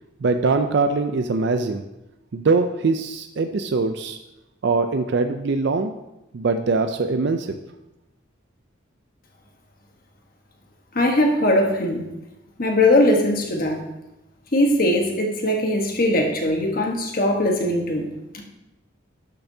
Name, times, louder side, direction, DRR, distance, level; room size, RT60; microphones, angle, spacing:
voice 1, 0.2-1.8 2.3-4.2 4.6-5.9 6.3-7.6, right 3 dB, 55° right, 7 dB, 0.4 m, -22 dB
voice 2, 10.9-12.0 12.6-13.8 14.5-18.1, left 1 dB, 45° left, 2 dB, 1.2 m, -20 dB
11.5 x 6.8 x 2.7 m, 0.94 s
head